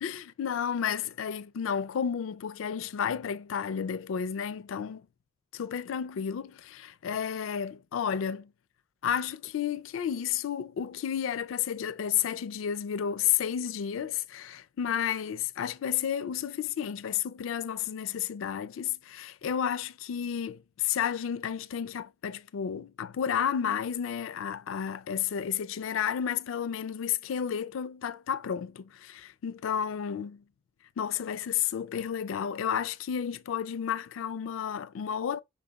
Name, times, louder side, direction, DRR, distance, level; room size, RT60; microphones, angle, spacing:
voice 1, 0.0-5.0 5.5-8.5 9.0-30.4 31.0-35.4, left 8 dB, 85° left, 0.4 m, -32 dB
5.5 x 3.9 x 2.3 m
head